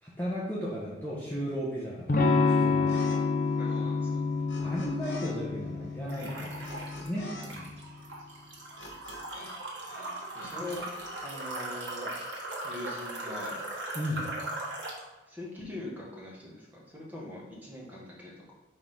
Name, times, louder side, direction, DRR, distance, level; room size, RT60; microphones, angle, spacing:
voice 1, 0.0-3.2 4.6-6.7 7.0-7.7 13.9-14.3, equal, 10° left, -8 dB, 1.0 m, -35 dB
Electric guitar / Strum, 2.1-7.8, left 4 dB, 45° left, 0.6 m, -28 dB
sound 1, 2.9-3.2 3.4-5.3 5.6-9.6 9.8-11.0, left 1 dB, 90° left, 1.4 m, -46 dB
voice 2, 3.6-4.2 10.3-10.8 11.2-12.1 12.6-13.6 15.3-18.5, left 1 dB, 10° right, -5 dB, 1.4 m, -42 dB
sound 2, 6.1-7.1 7.4-15.0, right 1 dB, 70° right, 1.4 m, -39 dB
5.3 x 3.8 x 5.4 m, 1.1 s
head